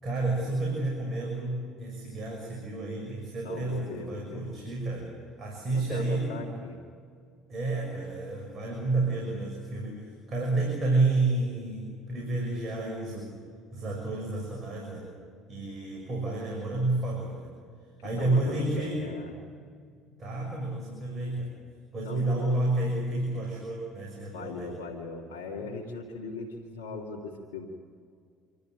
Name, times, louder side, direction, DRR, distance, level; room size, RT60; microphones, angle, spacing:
voice 1, 0.0-5.1 5.4-6.4 7.5-13.3 13.7-15.1 15.5-17.5 18.0-19.1 20.2-21.5 21.9-24.7, right 2 dB, 40° right, -1 dB, 6.6 m, -30 dB
voice 2, 3.4-4.5 5.7-6.8 18.2-19.3 22.0-22.6 24.3-27.7, left 4 dB, 90° left, -2 dB, 2.2 m, -39 dB
27.0 x 13.5 x 9.3 m, 2.2 s
hypercardioid pair, 75°, 0 cm